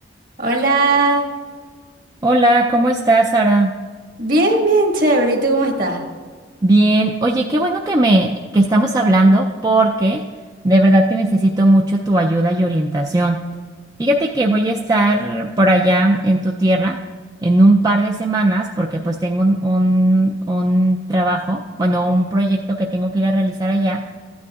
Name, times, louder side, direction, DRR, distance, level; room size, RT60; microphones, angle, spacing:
voice 1, 0.4-1.2 4.2-6.0, right 2 dB, 50° right, 1 dB, 1.6 m, -17 dB
voice 2, 2.2-3.7 6.6-10.2 10.6-13.4 14.0-17.0 17.4-24.0, right 1 dB, 20° right, 0 dB, 0.4 m, -17 dB
15.0 x 9.5 x 2.4 m, 1.5 s
head